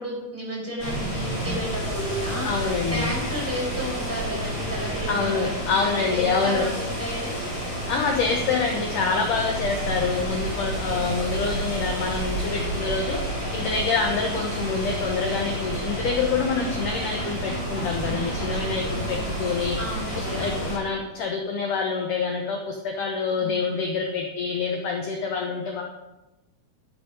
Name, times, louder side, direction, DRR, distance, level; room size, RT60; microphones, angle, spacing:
voice 1, 0.0-7.3 10.9-11.3 14.2-14.4 18.7-19.5 19.8-20.6 23.4-23.7, equal, 10° right, -5 dB, 4.8 m, -33 dB
sound 1, 0.8-20.8, right 1 dB, 30° left, 3.9 m, -30 dB
voice 2, 2.4-3.1 5.1-6.7 7.9-13.2 13.5-19.8 20.2-25.8, left 5 dB, 65° left, 2 dB, 2.2 m, -26 dB
12.0 x 9.2 x 5.3 m, 1.0 s
omnidirectional pair, 4.7 m